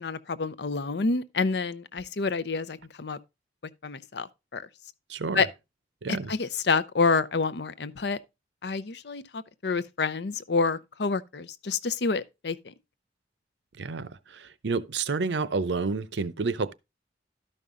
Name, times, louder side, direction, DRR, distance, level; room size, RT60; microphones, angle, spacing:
voice 1, 0.0-3.2 3.8-4.3 4.5-4.6 5.3-5.5 6.1-8.2 8.6-12.7, left 4 dB, 65° left, 0.6 m, -28 dB
voice 2, 5.1-5.4 6.0-6.3 13.8-16.7, right 4 dB, 75° right, 0.7 m, -30 dB
12.0 x 5.5 x 3.7 m
head